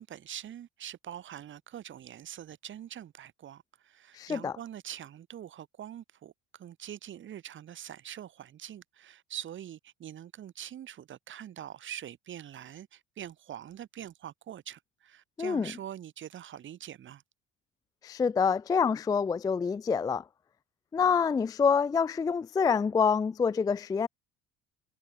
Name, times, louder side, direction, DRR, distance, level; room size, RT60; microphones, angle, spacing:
voice 1, 0.0-17.2, right 10 dB, 40° right, 2.4 m, -44 dB
voice 2, 4.2-4.5 15.4-15.7 18.0-20.2 20.9-24.1, left 6 dB, 15° left, 0.3 m, -26 dB
cardioid pair, 125°, 29 cm